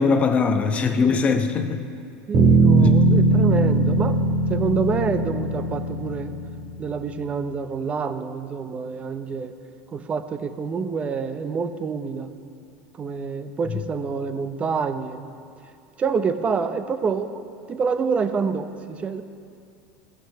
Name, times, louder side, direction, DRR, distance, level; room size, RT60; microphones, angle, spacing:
voice 1, 0.0-1.8 2.7-2.9, left 5 dB, 25° left, 6 dB, 0.9 m, -21 dB
voice 2, 2.3-4.2 4.5-6.3 6.8-9.5 9.9-12.3 13.0-15.3 16.0-17.4 17.7-19.2, right 5 dB, 25° right, 9 dB, 0.7 m, -27 dB
Bass guitar, 2.3-6.7, right 2 dB, 45° right, 1.7 m, -19 dB
17.0 x 6.4 x 5.7 m, 2.4 s
supercardioid pair, 120°, 5 cm